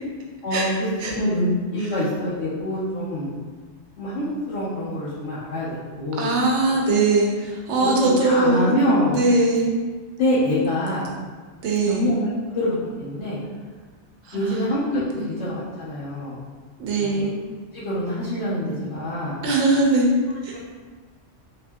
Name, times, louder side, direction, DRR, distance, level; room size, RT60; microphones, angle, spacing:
voice 1, 0.4-3.3 4.0-6.3 7.8-9.2 10.2-11.1 11.8-13.4 14.3-16.4 17.0-17.3 17.7-19.4, left 1 dB, 80° left, -11 dB, 1.0 m, -25 dB
voice 2, 6.2-8.8 9.1-9.7 11.6-12.0 14.2-14.7 15.2-15.3 16.8-17.3 19.4-20.1 20.4-20.6, right 3 dB, 85° right, -1 dB, 0.9 m, -21 dB
2.8 x 2.6 x 2.2 m, 1.5 s
omnidirectional pair, 1.2 m